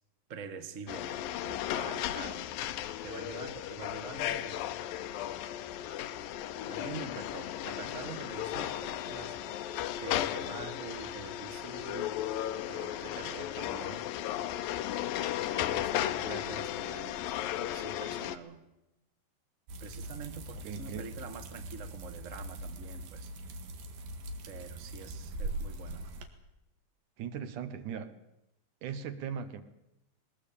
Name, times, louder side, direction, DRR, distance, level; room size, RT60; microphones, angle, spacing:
voice 1, 0.3-2.5 3.0-4.8 6.7-12.2 12.6-14.1 15.5-17.3 17.6-18.6 19.8-23.3 24.4-26.1, right 5 dB, 35° right, 8 dB, 1.3 m, -45 dB
sound 1, 0.9-18.4, left 12 dB, 80° left, 2.7 m, -35 dB
sound 2, 19.7-26.3, right 1 dB, 85° right, 3.8 m, -41 dB
voice 2, 20.6-21.1 27.2-28.1 28.8-29.6, right 8 dB, 65° right, 10 dB, 2.6 m, -38 dB
21.5 x 19.5 x 8.6 m, 0.89 s
omnidirectional pair, 4.1 m